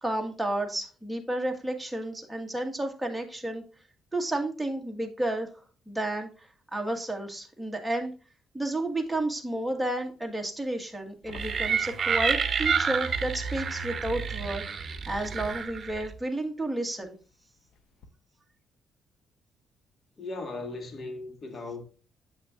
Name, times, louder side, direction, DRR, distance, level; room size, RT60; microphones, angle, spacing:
voice 1, 0.0-3.6 4.1-5.5 5.9-8.1 8.5-17.2, right 1 dB, 5° right, 1.5 m, -31 dB
sound 1, 8.9-16.0 16.3-18.1, left 4 dB, 80° left, 0.9 m, -49 dB
sound 2, 11.3-16.1, right 6 dB, 45° right, 0.8 m, -29 dB
voice 2, 20.2-21.8, left 3 dB, 45° left, 1.7 m, -37 dB
7.7 x 5.8 x 2.5 m
cardioid pair, 90°, 0 cm